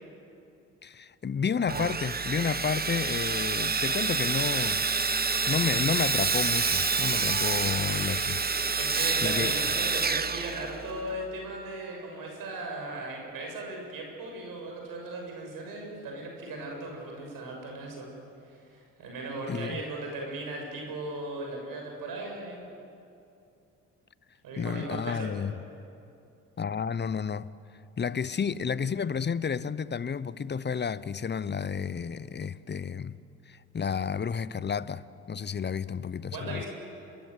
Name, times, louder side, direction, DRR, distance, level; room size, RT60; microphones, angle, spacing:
voice 1, 0.8-4.8 5.5-8.4 9.2-9.5 19.5-19.8 24.6-25.6 26.6-27.5 28.0-33.2 33.5-36.6, left 6 dB, 30° left, 0.8 m, -31 dB
Sawing, 1.7-11.1, right 4 dB, 25° right, 1.3 m, -28 dB
voice 2, 7.4-7.7 8.8-18.1 18.5-22.6 24.4-25.3 36.3-36.7, right 2 dB, 65° right, 7.3 m, -37 dB
26.5 x 21.5 x 8.0 m
hypercardioid pair, 55°, 37 cm